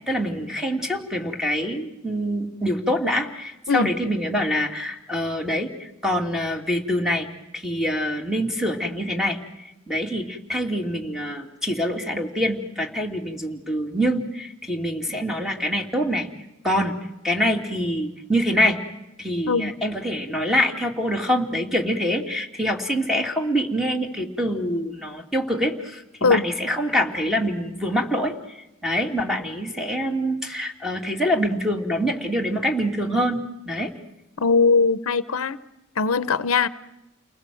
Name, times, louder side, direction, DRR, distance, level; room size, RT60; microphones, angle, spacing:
voice 1, 0.1-7.3 7.5-16.3 16.6-17.0 17.2-18.8 19.2-33.4 33.7-33.9, equal, ahead, 3 dB, 2.8 m, -25 dB
voice 2, 34.4-35.6 36.0-36.7, left 4 dB, 75° left, 14 dB, 0.9 m, -20 dB
30.0 x 20.5 x 7.8 m, 0.93 s
head